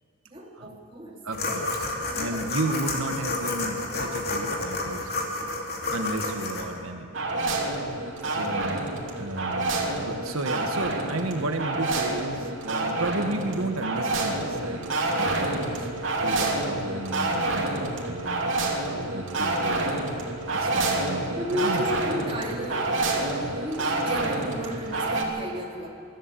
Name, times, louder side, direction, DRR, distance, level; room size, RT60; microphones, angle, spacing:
voice 1, 0.3-1.5 2.0-2.4 8.2-8.6 21.4-25.9, equal, 25° right, -3 dB, 2.9 m, -34 dB
voice 2, 1.2-1.8 2.1-5.1 5.9-7.1 8.3-8.9 9.2-15.9 16.2-20.0 20.5-21.9 23.4-23.6, right 2 dB, 90° right, 5 dB, 1.5 m, -33 dB
sound 1, 1.3-6.6, left 2 dB, 45° left, 3.1 m, -30 dB
sound 2, 7.1-25.2, right 2 dB, 70° right, 2.9 m, -28 dB
22.5 x 14.0 x 8.4 m, 2.7 s
head